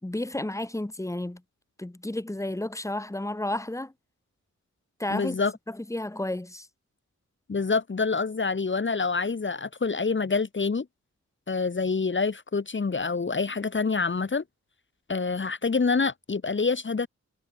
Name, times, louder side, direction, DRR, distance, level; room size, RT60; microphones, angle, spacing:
voice 1, 0.0-1.4 1.8-3.9 5.0-5.4 5.7-6.7, left 1 dB, 10° left, 2.7 m, -32 dB
voice 2, 5.1-5.5 7.5-10.9 11.5-14.4 15.1-17.1, left 4 dB, 40° left, 2.4 m, -26 dB
wide cardioid pair, 105°, 29 cm